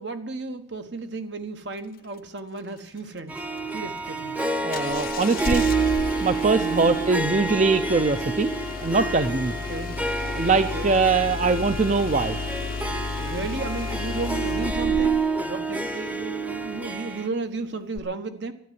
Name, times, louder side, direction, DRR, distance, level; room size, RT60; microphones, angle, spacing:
voice 1, 0.0-3.4 3.7-4.4 6.6-7.0 9.7-10.1 10.5-10.9 13.2-18.5, right 3 dB, 75° right, 7 dB, 1.3 m, -34 dB
Harp, 3.3-17.3, right 4 dB, 10° right, 0.7 m, -29 dB
voice 2, 4.6-5.7 6.2-8.5 8.8-9.5 10.3-12.4, right 4 dB, 45° right, 10 dB, 0.6 m, -22 dB
Engine starting, 4.7-15.3 18.0-18.1, left 4 dB, 55° left, 0.4 m, -33 dB
12.5 x 9.5 x 9.5 m, 0.74 s
head